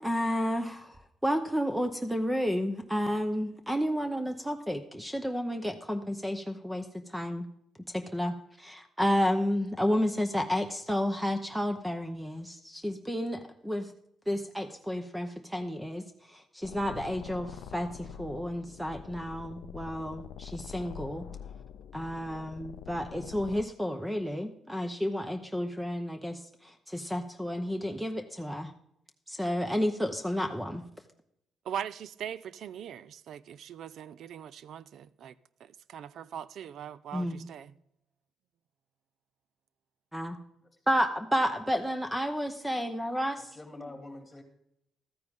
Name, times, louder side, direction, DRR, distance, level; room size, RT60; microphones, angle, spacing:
voice 1, 0.0-7.5 7.9-13.9 14.3-21.3 21.9-28.7 29.3-30.8 37.1-37.5 40.1-40.4 40.9-43.5, equal, 5° right, 0.8 m, -31 dB
sound 1, 16.6-23.6, left 9 dB, 80° left, 0.4 m, -45 dB
voice 2, 31.6-35.3 35.6-37.8, right 9 dB, 70° right, 0.4 m, -41 dB
voice 3, 43.4-44.4, left 2 dB, 15° left, 2.1 m, -46 dB
13.0 x 9.3 x 3.6 m
cardioid pair, 90°, 0 cm